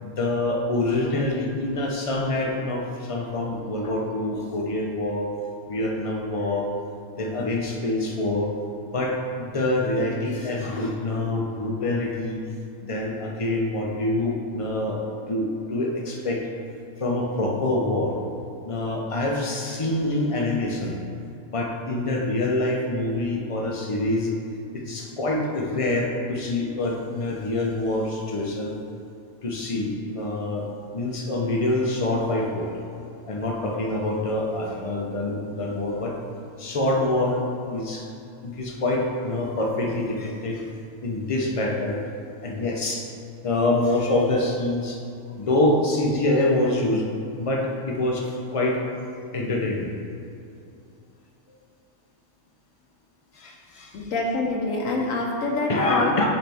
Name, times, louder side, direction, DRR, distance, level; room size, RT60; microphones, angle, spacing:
voice 1, 0.0-5.3 5.7-6.7 7.2-8.5 8.9-12.4 12.8-16.5 17.0-18.2 18.6-21.0 21.5-24.3 24.7-28.7 29.4-30.7 30.9-32.7 33.3-36.2 36.6-38.1 38.4-40.6 41.0-42.0 42.3-43.1 43.4-45.0 45.4-47.0 47.4-48.8 49.3-49.9 53.3-54.2 55.7-56.3, left 2 dB, 40° left, 0 dB, 0.5 m, -25 dB
voice 2, 53.9-56.3, left 2 dB, 80° left, -1 dB, 1.1 m, -26 dB
6.5 x 4.5 x 3.4 m, 2.5 s
omnidirectional pair, 1.4 m